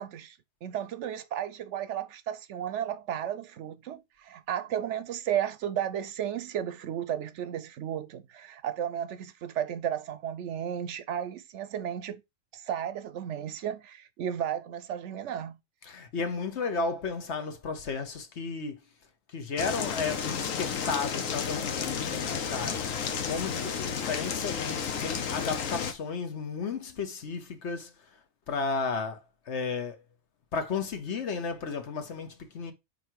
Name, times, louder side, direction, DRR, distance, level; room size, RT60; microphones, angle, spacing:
voice 1, 0.0-12.2 12.5-15.6, right 10 dB, 70° right, 0.9 m, -34 dB
voice 2, 15.9-18.8 19.3-22.9 23.1-27.9 28.5-30.0 30.5-32.7, left 4 dB, 60° left, 1.2 m, -33 dB
sound 1, 19.6-25.9, left 7 dB, 80° left, 1.2 m, -32 dB
5.3 x 4.0 x 4.6 m
omnidirectional pair, 1.3 m